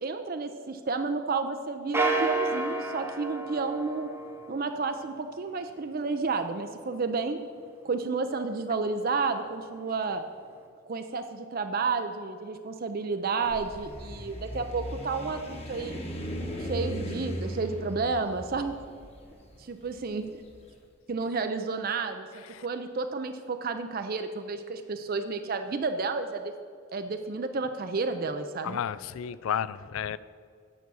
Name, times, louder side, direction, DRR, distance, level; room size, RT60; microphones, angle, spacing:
voice 1, 0.0-4.1 4.5-7.4 7.8-10.2 10.9-16.0 16.6-18.8 19.6-20.4 21.1-26.5 26.9-28.8, right 4 dB, 40° right, 7 dB, 0.4 m, -31 dB
sound 1, 1.9-4.6, right 2 dB, 10° right, 0.8 m, -30 dB
sound 2, 13.4-20.6, equal, 30° left, 1.1 m, -37 dB
voice 2, 28.6-30.2, left 8 dB, 70° left, 17 dB, 0.3 m, -32 dB
9.3 x 6.8 x 6.2 m, 2.2 s
head